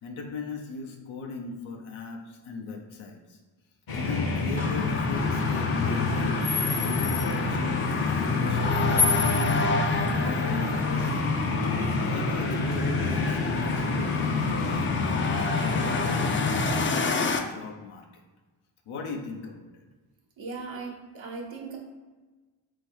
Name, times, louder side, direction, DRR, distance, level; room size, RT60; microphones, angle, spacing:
voice 1, 0.0-3.4 3.9-6.3 6.7-9.7 10.1-11.3 12.0-18.2 18.9-19.7, left 4 dB, 85° left, 2 dB, 0.7 m, -38 dB
sound 1, 3.9-16.8, left 3 dB, 50° left, 0.8 m, -28 dB
sound 2, 4.6-17.4, left 4 dB, 25° left, 0.4 m, -29 dB
voice 2, 20.4-21.8, right 4 dB, 70° right, 0 dB, 1.1 m, -38 dB
3.8 x 2.6 x 4.5 m, 1.3 s
supercardioid pair, 45°, 47 cm